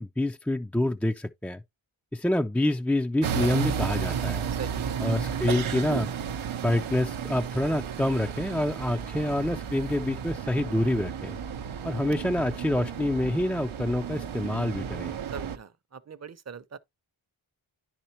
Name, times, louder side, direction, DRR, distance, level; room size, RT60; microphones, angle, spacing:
voice 1, 0.0-1.6 2.1-4.5 5.0-6.1 6.6-11.4 11.8-15.2, left 1 dB, 5° left, 0.3 m, -27 dB
sound 1, 3.2-15.6, right 7 dB, 85° right, 0.7 m, -33 dB
voice 2, 4.5-5.0 15.2-16.8, right 6 dB, 35° right, 0.6 m, -41 dB
10.0 x 4.4 x 2.8 m
cardioid pair, 40°, 47 cm